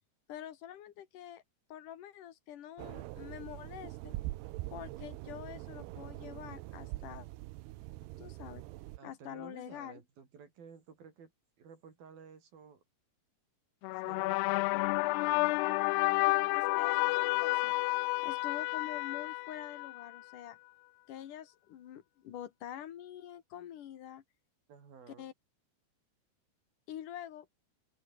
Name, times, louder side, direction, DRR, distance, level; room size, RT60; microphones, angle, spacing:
voice 1, 0.3-1.4 1.7-4.2 4.7-7.3 8.2-8.6 9.0-10.0 16.2-17.7 18.2-20.6 21.1-24.2 25.1-25.3 26.9-27.5, left 11 dB, 60° left, 2.9 m, -46 dB
sound 1, 2.8-9.0, right 18 dB, 85° right, 2.8 m, -43 dB
voice 2, 9.0-11.3 11.6-12.8 14.0-15.0 24.7-25.3, right 6 dB, 60° right, 6.0 m, -54 dB
sound 2, 13.8-20.2, left 24 dB, 85° left, 2.5 m, -30 dB
omnidirectional pair, 4.7 m